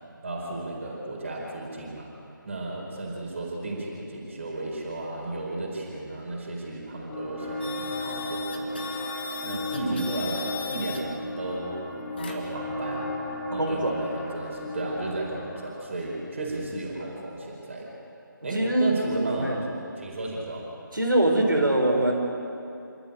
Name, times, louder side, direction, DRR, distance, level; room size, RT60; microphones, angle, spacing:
voice 1, 0.2-2.1 2.4-8.9 9.4-11.8 12.1-13.1 13.5-17.9 18.4-19.6 20.0-20.7, right 2 dB, 35° right, -2 dB, 4.6 m, -33 dB
sound 1, 7.1-15.7, left 1 dB, 5° left, 4.4 m, -35 dB
sound 2, 7.6-11.0 12.2-12.6, left 7 dB, 30° left, 1.8 m, -38 dB
voice 2, 13.5-13.9 18.5-19.0 19.4-19.7 20.9-22.1, right 1 dB, 75° right, -1 dB, 4.6 m, -23 dB
28.0 x 13.5 x 9.0 m, 2.8 s
figure-of-eight pair, 155°, 11 cm